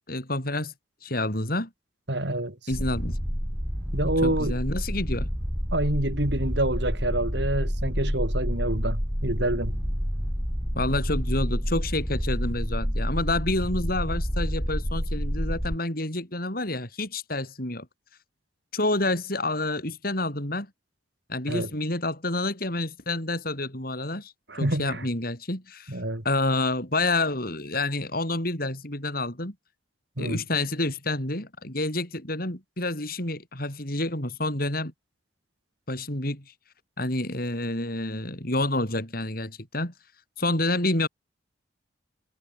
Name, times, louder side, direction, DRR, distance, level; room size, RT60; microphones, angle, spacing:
voice 1, 0.1-0.7 1.0-1.7 2.7-3.2 4.2-5.3 10.7-17.9 18.7-20.7 21.3-24.3 24.6-25.9 26.2-29.5 30.2-34.9 35.9-36.4 37.0-39.9 40.4-41.1, left 2 dB, 50° left, 6.9 m, -28 dB
voice 2, 2.1-2.6 3.9-4.6 5.7-9.7 21.5-21.7 24.5-25.0 25.9-26.2 30.2-30.4, right 1 dB, 65° right, 4.3 m, -27 dB
sound 1, 2.7-15.8, equal, 5° right, 4.3 m, -29 dB
head